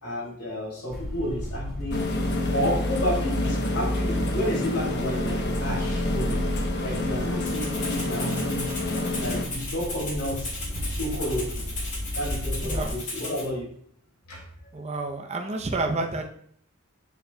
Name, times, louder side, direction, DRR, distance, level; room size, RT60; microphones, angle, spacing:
voice 1, 0.0-2.1 2.5-6.5 6.8-8.7 9.2-10.5 10.8-11.6 12.1-13.7 14.3-14.4, equal, 80° left, -2 dB, 2.7 m, -31 dB
sound 1, 0.9-12.9, equal, ahead, 1.7 m, -32 dB
sound 2, 1.9-9.4, left 2 dB, 55° left, 0.9 m, -29 dB
Rattle (instrument), 7.5-13.5, left 2 dB, 35° left, 2.1 m, -36 dB
voice 2, 14.7-16.3, right 2 dB, 30° right, 3 dB, 0.6 m, -29 dB
7.0 x 6.9 x 2.2 m, 0.65 s
head